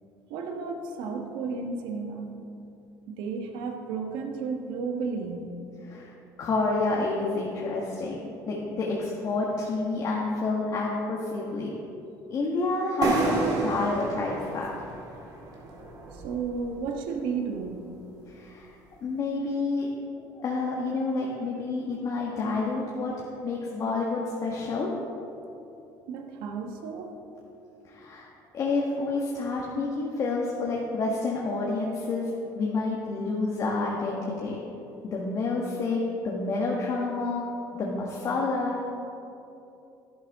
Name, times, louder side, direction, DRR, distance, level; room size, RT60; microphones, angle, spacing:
voice 1, 0.3-2.4 3.1-5.5 16.1-17.9 26.1-27.1, right 5 dB, 80° right, 3 dB, 1.3 m, -33 dB
voice 2, 6.4-11.8 12.3-14.7 18.3-18.8 19.0-19.9 20.4-25.0 27.8-28.3 28.5-32.3 32.5-34.6 35.0-37.5 37.8-38.8, left 3 dB, 45° left, -3 dB, 1.5 m, -29 dB
sound 1, 13.0-16.6, right 3 dB, 50° right, 2.2 m, -29 dB
11.5 x 11.0 x 3.6 m, 2.8 s
cardioid pair, 110°, 8 cm